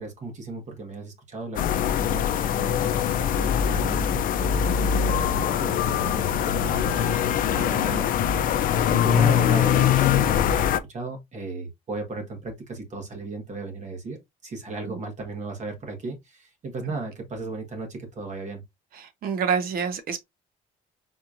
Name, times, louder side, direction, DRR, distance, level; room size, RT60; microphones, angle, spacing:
voice 1, 0.0-14.2 14.4-18.6, right 3 dB, 45° right, 1.4 m, -36 dB
sound 1, 1.6-10.8, left 9 dB, 55° left, 0.5 m, -22 dB
voice 2, 18.9-20.2, right 6 dB, 60° right, 0.9 m, -27 dB
4.4 x 2.9 x 2.5 m
cardioid pair, 110°, 17 cm